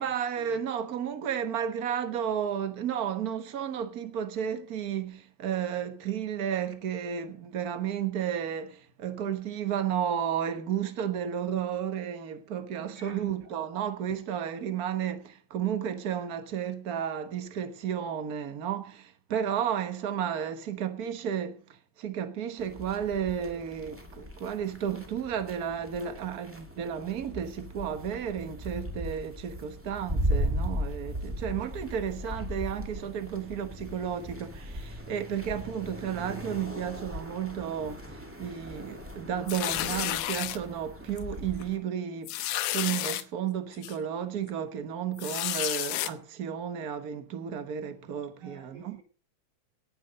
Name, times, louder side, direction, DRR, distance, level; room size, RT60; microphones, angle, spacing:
voice 1, 0.0-49.0, right 8 dB, 80° right, 0.8 m, -33 dB
voice 2, 12.8-13.5 48.4-49.0, right 2 dB, 35° right, 3.4 m, -49 dB
sound 1, 22.6-41.8, equal, 5° right, 1.5 m, -37 dB
sound 2, 39.5-40.6 41.2-41.3 41.6-41.7 42.3-43.2 43.8-43.9 45.2-46.1, left 14 dB, 90° left, 2.3 m, -31 dB
18.5 x 8.0 x 5.2 m
omnidirectional pair, 3.6 m